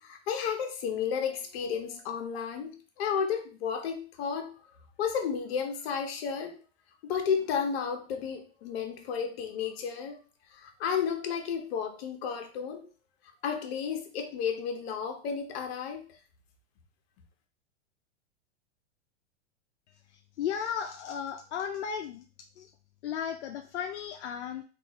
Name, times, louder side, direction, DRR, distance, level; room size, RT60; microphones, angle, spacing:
voice 1, 0.0-4.5 5.0-6.6 7.0-10.2 10.5-12.9 13.4-16.0, left 7 dB, 60° left, 4 dB, 0.9 m, -32 dB
voice 2, 20.4-22.3 22.6-22.7 23.0-24.6, left 8 dB, 85° left, 5 dB, 0.5 m, -34 dB
3.5 x 2.4 x 3.0 m, 0.36 s
hypercardioid pair, 125°, 34 cm